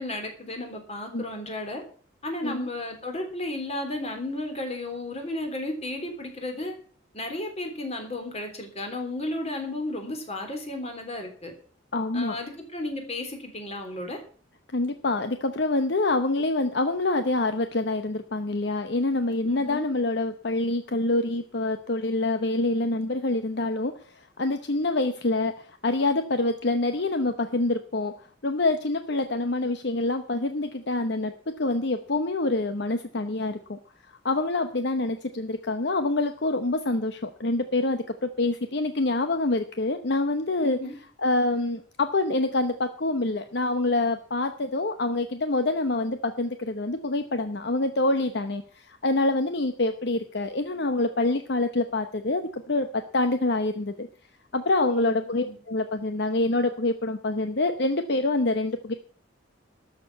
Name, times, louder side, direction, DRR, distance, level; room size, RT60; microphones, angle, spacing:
voice 1, 0.0-1.8 2.2-6.7 7.1-11.5 12.1-14.2 19.4-19.9 40.6-40.9 55.0-55.6, left 1 dB, 35° left, 4 dB, 3.4 m, -33 dB
voice 2, 11.9-12.4 14.7-28.1 28.4-31.3 31.6-33.8 34.2-40.8 41.2-54.1 54.5-58.9, left 2 dB, 60° left, 8 dB, 0.9 m, -26 dB
13.0 x 6.8 x 8.2 m, 0.43 s
head